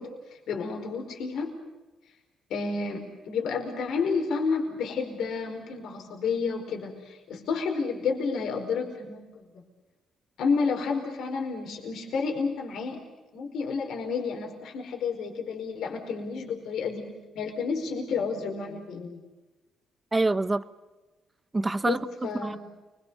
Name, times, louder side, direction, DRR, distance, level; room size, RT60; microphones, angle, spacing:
voice 1, 0.0-1.5 2.5-9.2 10.4-13.0 13.3-19.2 21.7-22.6, left 5 dB, 75° left, 2 dB, 4.8 m, -30 dB
voice 2, 20.1-20.6 21.5-22.6, right 2 dB, 20° right, 13 dB, 1.2 m, -26 dB
29.5 x 23.0 x 6.9 m, 1.2 s
cardioid pair, 90°, 0 cm